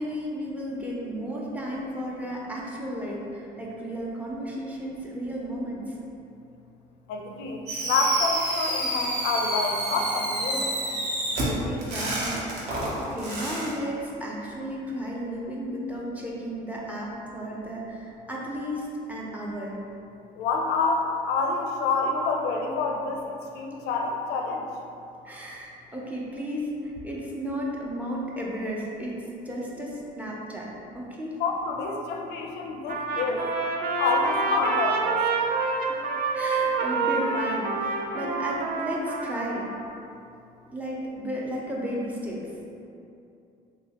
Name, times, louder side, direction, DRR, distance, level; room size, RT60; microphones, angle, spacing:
voice 1, 0.0-6.0 11.4-19.8 25.2-31.4 35.8-39.7 40.7-42.5, equal, 10° right, -4 dB, 0.5 m, -34 dB
voice 2, 7.1-10.8 20.4-23.3 23.5-24.7 31.4-33.5 34.0-35.2, left 3 dB, 80° left, 1 dB, 0.4 m, -27 dB
Fireworks, 7.7-13.7, right 1 dB, 85° right, 0.8 m, -29 dB
Trumpet, 32.9-39.8, right 4 dB, 65° right, 0.4 m, -27 dB
3.0 x 2.8 x 2.8 m, 2.7 s
cardioid pair, 110°, 17 cm